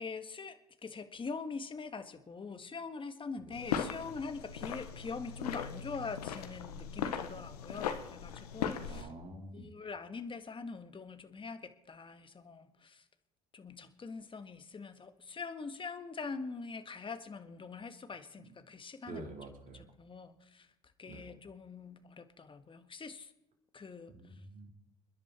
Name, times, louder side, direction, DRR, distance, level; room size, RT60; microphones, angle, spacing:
voice 1, 0.0-9.1 9.5-13.0 13.5-19.3 19.7-20.7 21.0-23.3 23.7-24.1, left 4 dB, 25° left, 9 dB, 1.7 m, -44 dB
sound 1, 3.5-9.0, left 8 dB, 85° left, 1.3 m, -38 dB
voice 2, 8.9-9.7 19.1-19.8 21.1-21.3 24.1-24.7, right 2 dB, 45° right, 3 dB, 4.1 m, -47 dB
28.5 x 10.5 x 4.4 m, 0.83 s
hypercardioid pair, 65°, 19 cm